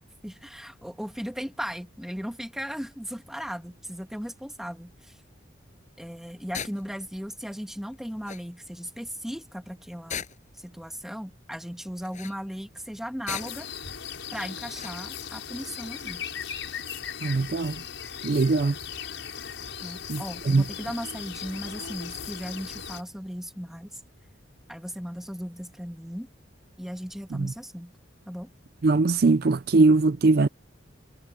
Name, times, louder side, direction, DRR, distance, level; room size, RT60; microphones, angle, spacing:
voice 1, 0.2-5.2 6.0-10.2 10.6-13.7 14.3-16.2 19.8-24.0 24.7-26.3 26.8-27.9 28.3-28.5, equal, ahead, 1.6 m, -37 dB
sound 1, 6.5-6.8 7.9-8.0 8.3-8.4 10.1-10.6 12.0-12.4 13.3-13.7 14.8-15.0, left 7 dB, 40° left, 7.0 m, -36 dB
sound 2, 13.3-23.0, left 7 dB, 70° left, 6.0 m, -38 dB
voice 2, 17.2-17.7 18.2-18.7 20.1-20.2 20.5-20.6 28.8-30.5, right 3 dB, 50° right, 0.4 m, -20 dB
head